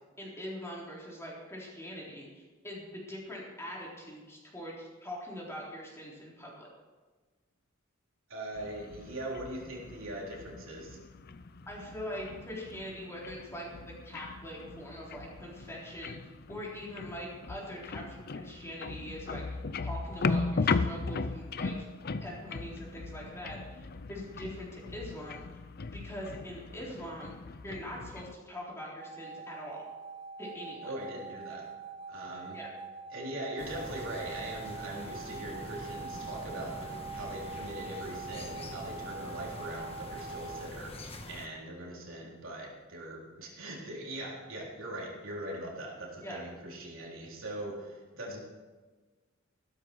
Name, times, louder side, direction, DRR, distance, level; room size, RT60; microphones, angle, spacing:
voice 1, 0.2-6.7 11.7-16.1 16.5-21.9 22.2-25.4 25.9-27.3 27.6-29.8 30.4-30.9 32.5-32.7 46.2-46.4, equal, 15° left, -4 dB, 4.0 m, -43 dB
voice 2, 8.3-11.0 30.8-31.7 32.1-32.6 33.1-48.4, right 1 dB, 75° right, -3 dB, 3.7 m, -41 dB
sound 1, 8.5-28.3, left 4 dB, 50° left, 0.6 m, -38 dB
sound 2, 29.0-40.7, right 5 dB, 25° right, 1.0 m, -44 dB
sound 3, 33.6-41.5, left 1 dB, 30° left, 1.4 m, -45 dB
15.0 x 13.0 x 4.7 m, 1.3 s
head